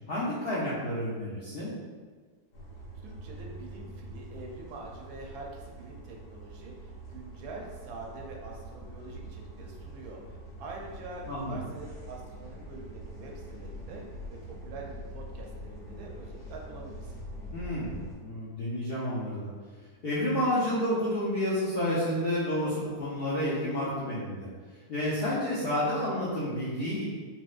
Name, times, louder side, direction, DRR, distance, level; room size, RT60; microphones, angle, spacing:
voice 1, 0.1-1.7 11.3-11.6 17.5-18.0 18.2-19.5 20.0-24.5 24.9-27.0, left 1 dB, 65° left, -9 dB, 0.6 m, -30 dB
sound 1, 2.5-18.1, right 1 dB, 80° left, 1.4 m, -44 dB
voice 2, 3.0-14.0 14.3-17.1, right 2 dB, 80° right, -1 dB, 1.1 m, -45 dB
4.2 x 2.1 x 2.4 m, 1.5 s
omnidirectional pair, 1.7 m